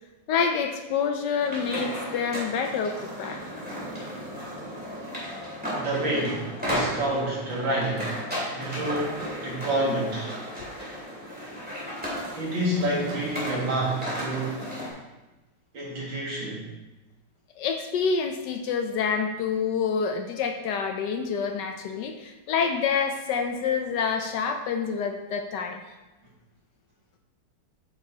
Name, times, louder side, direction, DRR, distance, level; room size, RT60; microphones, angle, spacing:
voice 1, 0.3-3.4 10.6-10.7 17.6-25.8, left 6 dB, 75° left, 6 dB, 1.2 m, -27 dB
sound 1, 1.4-14.9, equal, 5° right, 2.3 m, -34 dB
voice 2, 5.7-8.1 8.5-10.3 12.4-14.7 15.7-16.7, right 1 dB, 85° right, -5 dB, 2.8 m, -28 dB
8.8 x 6.4 x 2.8 m, 1.1 s
omnidirectional pair, 2.0 m